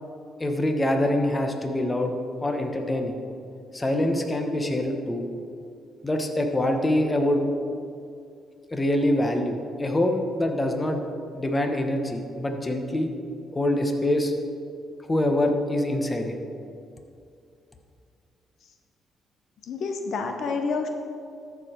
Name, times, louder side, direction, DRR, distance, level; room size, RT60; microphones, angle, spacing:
voice 1, 0.4-2.1 2.4-3.2 3.7-5.3 6.0-7.4 8.7-11.0 11.3-13.1 13.5-14.3 15.0-16.4, left 1 dB, 20° left, 4 dB, 1.0 m, -25 dB
voice 2, 19.7-20.9, left 4 dB, 65° left, 5 dB, 0.6 m, -28 dB
13.5 x 4.7 x 4.4 m, 2.4 s
cardioid pair, 90°, 0 cm